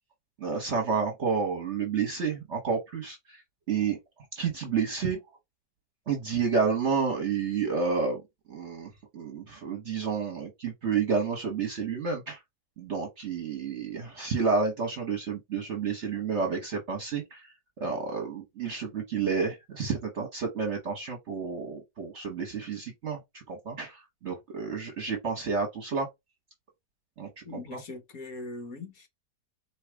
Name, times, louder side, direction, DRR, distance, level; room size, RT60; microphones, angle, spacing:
voice 1, 0.4-3.4 3.7-4.0 4.4-5.2 6.1-8.2 8.5-12.4 12.8-26.1 27.2-27.8, right 5 dB, 50° right, 1.2 m, -30 dB
voice 2, 27.5-29.1, left 2 dB, 55° left, 1.9 m, -41 dB
4.7 x 3.1 x 3.4 m
omnidirectional pair, 1.8 m